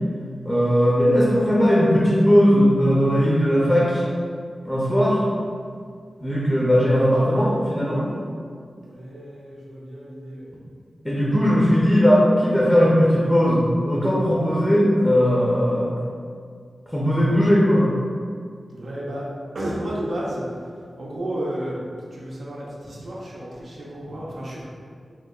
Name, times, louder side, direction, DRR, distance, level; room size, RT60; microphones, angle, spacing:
voice 1, 0.4-4.0 4.6-5.2 6.2-8.1 11.0-15.9 16.9-17.8, equal, 5° left, -6 dB, 0.5 m, -18 dB
voice 2, 8.8-10.5 18.7-19.3 19.5-20.4 21.0-21.8 22.1-24.6, right 1 dB, 70° right, -5 dB, 0.6 m, -32 dB
2.7 x 2.1 x 3.5 m, 2.1 s
wide cardioid pair, 110°, 0 cm